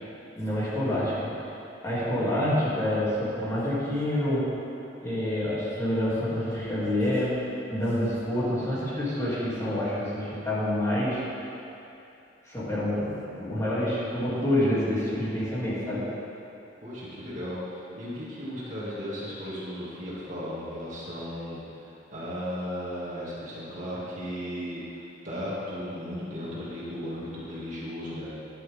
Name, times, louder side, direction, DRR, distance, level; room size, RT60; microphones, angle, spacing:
voice 1, 0.3-1.3 1.8-4.5 5.0-7.3 7.7-11.2 12.4-16.1, left 1 dB, 20° left, -10 dB, 3.1 m, -27 dB
voice 2, 16.8-28.3, equal, 45° right, -8 dB, 2.6 m, -36 dB
13.0 x 11.0 x 3.8 m, 2.8 s
head